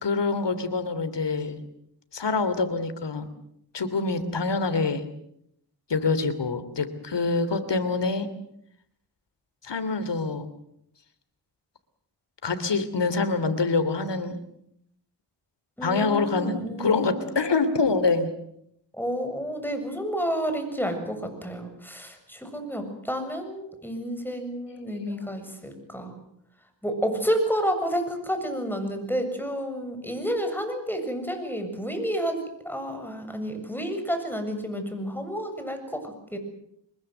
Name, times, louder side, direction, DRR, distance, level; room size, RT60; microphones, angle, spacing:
voice 1, 0.0-1.6 2.1-3.3 3.7-5.0 5.9-8.3 9.6-10.5 12.4-14.4 15.8-18.3 24.8-25.1, left 4 dB, 70° left, 11 dB, 3.1 m, -26 dB
voice 2, 15.8-17.2 18.9-26.1 26.8-36.4, equal, 5° left, 6 dB, 7.3 m, -30 dB
24.5 x 21.5 x 8.0 m, 0.74 s
cardioid pair, 60°, 44 cm